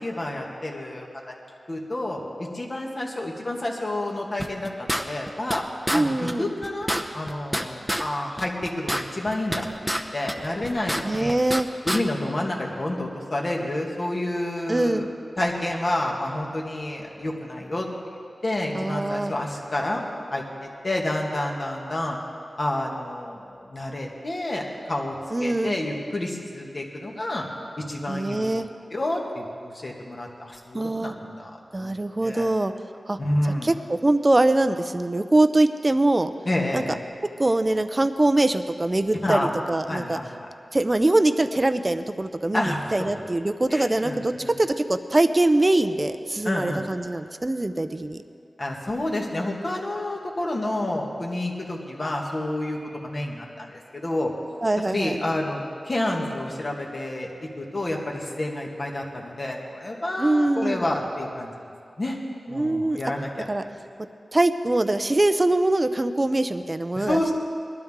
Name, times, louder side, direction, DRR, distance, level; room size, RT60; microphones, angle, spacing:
voice 1, 0.0-1.3 1.7-5.6 5.9-11.4 11.8-15.1 15.4-17.9 18.4-20.0 20.3-22.2 22.6-25.2 25.4-27.5 27.8-28.5 28.9-31.5 31.8-31.9 32.2-32.5 33.2-33.7 36.4-37.0 39.2-39.5 39.9-40.5 42.5-43.1 43.7-44.5 46.4-46.8 48.6-54.3 54.9-61.5 62.0-62.2 62.5-63.5 67.0-67.3, left 1 dB, 45° left, -1 dB, 2.0 m, -29 dB
sound 1, 4.4-5.6 5.9-6.0 6.3-6.4 6.6-8.1 8.4-10.0 10.3-11.6 11.9-12.0, equal, ahead, 0.8 m, -27 dB
voice 2, 5.9-6.5 11.0-11.7 14.7-15.1 18.7-19.3 25.3-25.8 28.1-28.7 30.7-31.1 31.7-32.7 33.1-33.2 33.6-36.3 36.7-37.0 37.4-40.2 40.7-48.2 54.6-55.2 60.2-60.8 62.5-63.0 63.5-63.6 64.3-67.3, right 2 dB, 30° right, 10 dB, 0.6 m, -23 dB
20.5 x 12.0 x 3.7 m, 2.3 s
wide cardioid pair, 70°, 0 cm